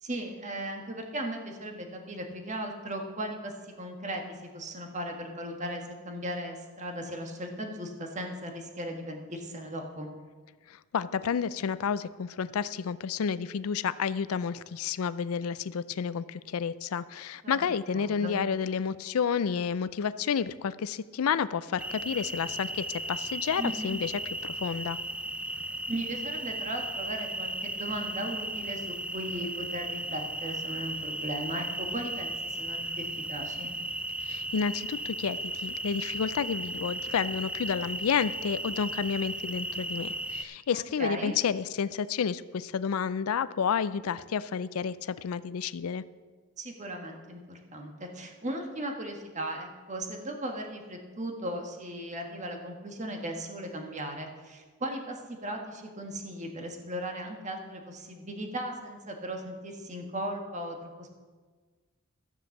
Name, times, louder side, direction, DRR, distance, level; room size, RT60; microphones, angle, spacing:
voice 1, 0.0-10.1 17.4-18.4 23.6-24.0 25.9-33.7 40.7-41.4 46.6-61.2, right 1 dB, 35° right, 3 dB, 1.5 m, -37 dB
voice 2, 10.7-25.0 34.2-46.0, left 6 dB, 80° left, 16 dB, 0.4 m, -30 dB
sound 1, 21.8-40.4, right 1 dB, 5° right, 0.4 m, -35 dB
13.0 x 7.3 x 7.1 m, 1.4 s
head